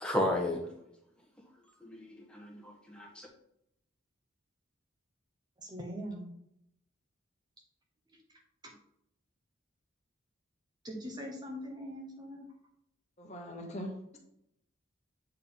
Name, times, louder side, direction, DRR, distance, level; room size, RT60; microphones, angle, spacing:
voice 1, 0.0-0.6 1.8-3.3, left 1 dB, 5° left, -1 dB, 1.2 m, -33 dB
voice 2, 5.6-6.3 8.6-8.7 10.8-12.5, equal, 20° right, 1 dB, 0.8 m, -42 dB
voice 3, 13.2-14.2, equal, 35° left, 1 dB, 1.1 m, -41 dB
7.7 x 3.8 x 3.9 m, 0.78 s
head